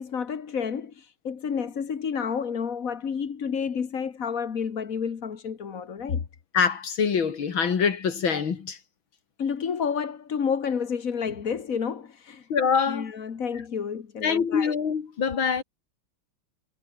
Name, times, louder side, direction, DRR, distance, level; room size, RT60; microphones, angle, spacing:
voice 1, 0.0-6.2 9.4-12.5 12.9-14.8, left 6 dB, 45° left, 1.7 m, -30 dB
voice 2, 6.5-8.8 12.5-13.1 14.2-15.6, left 6 dB, 65° left, 2.8 m, -24 dB
omnidirectional pair, 2.3 m